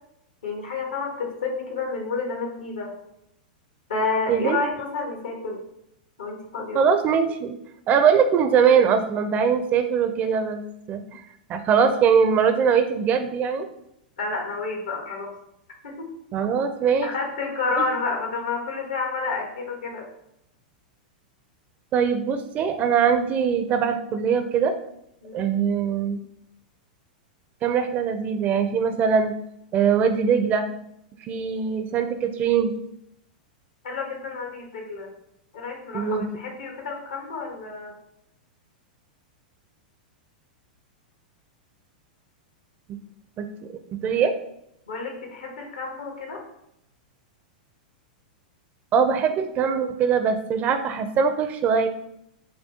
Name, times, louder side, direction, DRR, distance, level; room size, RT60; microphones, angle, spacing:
voice 1, 0.4-2.9 3.9-5.6 6.2-6.8 14.2-15.3 15.8-16.1 17.0-20.1 25.2-25.4 33.8-35.1 35.5-37.9 44.9-46.4, left 4 dB, 80° left, 1 dB, 1.2 m, -30 dB
voice 2, 4.3-4.6 6.7-7.5 7.9-10.6 10.9-11.2 11.5-13.7 16.3-17.1 17.8-17.9 21.9-24.7 25.3-26.2 27.6-29.3 29.7-30.6 31.2-32.7 35.9-36.3 42.9-43.0 43.4-44.3 48.9-51.9, right 6 dB, 35° right, 9 dB, 0.4 m, -22 dB
5.6 x 2.3 x 2.8 m, 0.78 s
hypercardioid pair, 105°, 5 cm